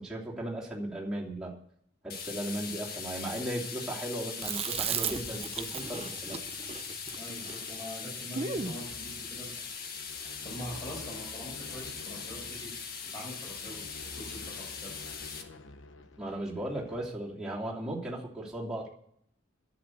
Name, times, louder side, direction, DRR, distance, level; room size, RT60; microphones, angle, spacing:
voice 1, 0.0-1.6 2.0-6.4 16.2-18.9, right 1 dB, 5° right, -6 dB, 3.0 m, -36 dB
sound 1, 2.1-15.4, left 6 dB, 50° left, 1.6 m, -40 dB
Chewing mastication, 4.4-8.8, right 7 dB, 30° right, 0.6 m, -36 dB
voice 2, 7.2-9.6 10.4-12.7 13.0-14.9, equal, 20° left, -3 dB, 5.8 m, -44 dB
sound 2, 8.5-17.1, left 2 dB, 85° left, 1.1 m, -50 dB
10.5 x 8.2 x 9.4 m, 0.67 s
head